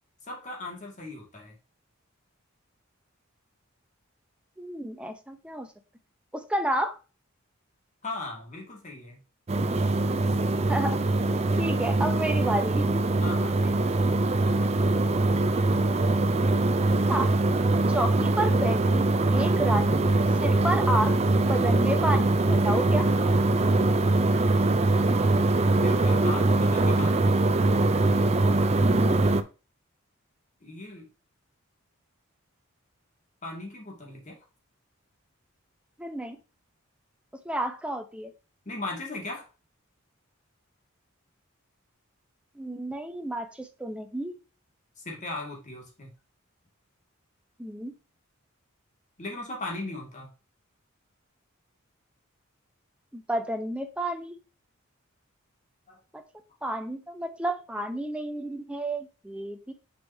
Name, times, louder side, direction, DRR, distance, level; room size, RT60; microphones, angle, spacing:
voice 1, 0.2-1.5 8.0-9.2 13.2-14.0 14.4-14.7 25.8-27.3 30.6-31.1 33.4-34.4 38.7-39.5 45.0-46.1 49.2-50.3 55.9-56.0, left 2 dB, 35° left, -1 dB, 2.2 m, -38 dB
voice 2, 4.6-5.7 6.3-7.0 10.7-11.0 11.6-13.0 17.1-17.4 17.9-20.1 20.4-21.1 21.4-23.1 28.8-29.2 36.0-36.4 37.4-38.3 42.6-44.4 47.6-47.9 53.1-54.3 56.6-59.7, right 1 dB, 5° right, 6 dB, 0.8 m, -31 dB
sound 1, 9.5-29.4, right 2 dB, 30° right, 0.5 m, -23 dB
6.6 x 5.4 x 2.8 m, 0.32 s
head